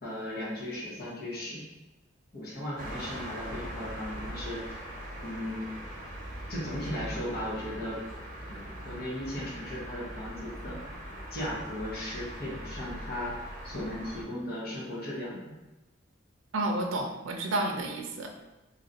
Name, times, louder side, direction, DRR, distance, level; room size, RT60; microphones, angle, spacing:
voice 1, 0.0-1.6 2.3-4.6 5.2-5.7 6.5-8.0 8.5-10.8 11.3-13.4 13.6-15.5, left 1 dB, 50° left, -6 dB, 1.0 m, -36 dB
sound 1, 2.8-14.2, right 1 dB, 45° right, 0.8 m, -41 dB
voice 2, 16.5-18.4, right 2 dB, 80° right, 3 dB, 0.6 m, -31 dB
3.0 x 2.5 x 3.9 m, 1.0 s
head